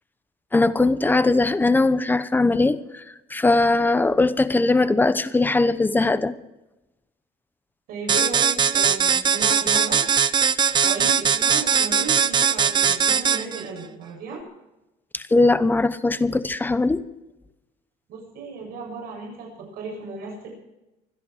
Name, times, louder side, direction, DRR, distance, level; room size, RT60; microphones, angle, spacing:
voice 1, 0.5-3.0 3.3-6.4 15.1-17.0, left 2 dB, 10° left, 14 dB, 0.8 m, -20 dB
voice 2, 7.9-10.0 10.8-14.4 18.1-20.5, right 3 dB, 60° right, -1 dB, 8.0 m, -35 dB
sound 1, 8.1-13.6, right 7 dB, 25° right, 0.6 m, -20 dB
25.0 x 10.5 x 4.8 m, 0.96 s
cardioid pair, 125°, 17 cm